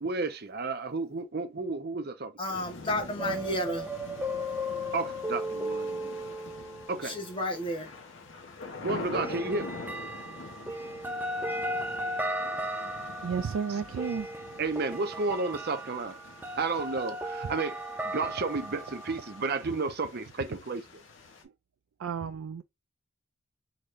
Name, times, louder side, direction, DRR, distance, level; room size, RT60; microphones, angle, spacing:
voice 1, 0.0-2.3 4.9-6.3 6.9-7.2 8.8-9.8 14.6-16.2 16.6-17.8 18.0-20.8, right 3 dB, 50° right, 0.6 m, -32 dB
voice 2, 2.4-3.9 7.0-7.9, left 1 dB, 25° left, 1.2 m, -32 dB
sound 1, 2.5-21.4, left 3 dB, 70° left, 1.1 m, -45 dB
sound 2, 3.2-7.5 9.1-19.7, equal, 10° right, 0.4 m, -36 dB
voice 3, 13.2-14.3 17.4-17.5 18.2-18.3 19.6-19.7 21.4-21.5 22.0-22.6, right 6 dB, 85° right, 0.4 m, -33 dB
3.9 x 3.1 x 2.5 m
head